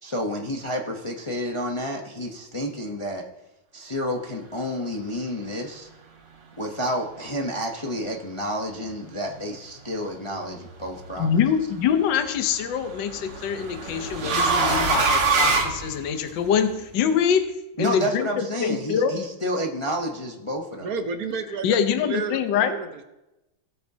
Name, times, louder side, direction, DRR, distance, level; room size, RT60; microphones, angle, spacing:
voice 1, 0.0-3.3 3.7-5.9 6.6-11.4 17.8-20.9, equal, 45° left, 0 dB, 0.3 m, -30 dB
sound 1, 10.6-11.1 12.5-16.5, right 4 dB, 90° right, 2.4 m, -24 dB
voice 2, 11.2-17.4 17.8-19.1 21.6-22.7, left 8 dB, 65° left, 8 dB, 1.4 m, -24 dB
voice 3, 20.8-23.0, right 5 dB, 55° right, 6 dB, 1.2 m, -31 dB
18.0 x 8.8 x 2.8 m, 0.94 s
omnidirectional pair, 2.3 m